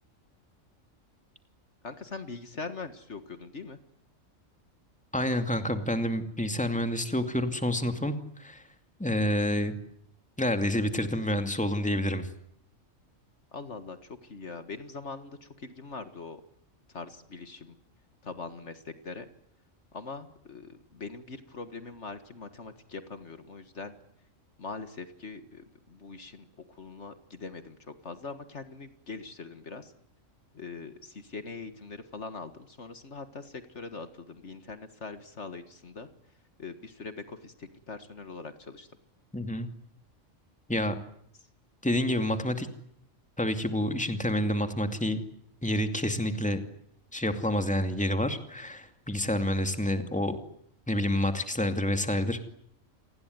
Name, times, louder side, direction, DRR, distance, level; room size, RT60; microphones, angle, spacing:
voice 1, 1.8-3.8 13.5-16.4 16.9-17.8 18.2-19.3 19.9-23.9 24.6-29.9 30.5-36.1 36.6-38.9, left 4 dB, 60° left, 10 dB, 2.0 m, -42 dB
voice 2, 5.1-8.6 9.0-9.7 10.4-12.3 39.3-39.7 40.7-41.0 41.8-42.7 43.4-45.2 45.6-46.6 47.1-50.4 50.9-52.4, left 1 dB, 5° left, 7 dB, 2.4 m, -28 dB
29.0 x 20.0 x 9.6 m, 0.71 s
omnidirectional pair, 1.4 m